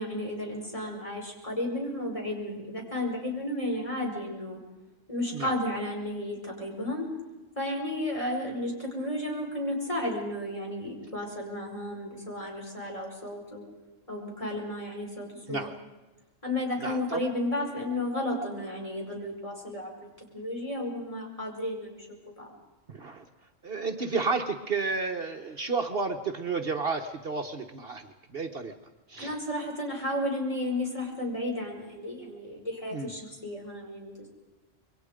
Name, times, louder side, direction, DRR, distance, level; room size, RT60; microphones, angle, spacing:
voice 1, 0.0-4.6 5.1-7.1 7.6-13.7 14.1-15.7 16.4-20.1 20.3-22.5 29.2-34.3, left 1 dB, 25° left, -1 dB, 5.4 m, -33 dB
voice 2, 16.8-17.2 22.9-23.2 23.6-28.7 29.1-29.4 32.9-33.1, right 4 dB, 50° right, 4 dB, 1.3 m, -32 dB
27.0 x 22.5 x 5.1 m, 1.1 s
omnidirectional pair, 1.3 m